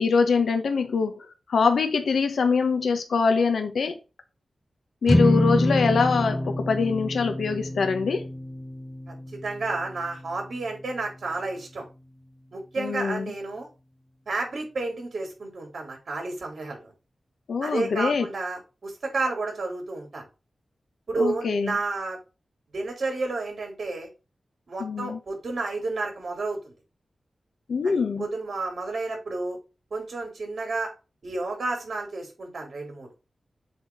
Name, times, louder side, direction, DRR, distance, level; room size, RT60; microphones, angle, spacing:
voice 1, 0.0-4.0 5.0-8.2 12.8-13.3 17.5-18.3 21.2-21.8 24.8-25.2 27.7-28.3, left 5 dB, 85° left, 1.2 m, -24 dB
sound 1, 5.1-11.5, left 1 dB, 5° left, 0.5 m, -27 dB
voice 2, 9.4-11.8 12.5-13.7 14.3-16.9 17.6-20.3 21.1-22.2 22.7-24.1 24.7-26.8 27.8-29.6 29.9-30.9 31.2-33.1, right 3 dB, 65° right, 4.2 m, -31 dB
7.8 x 3.8 x 5.8 m
wide cardioid pair, 95°, 0 cm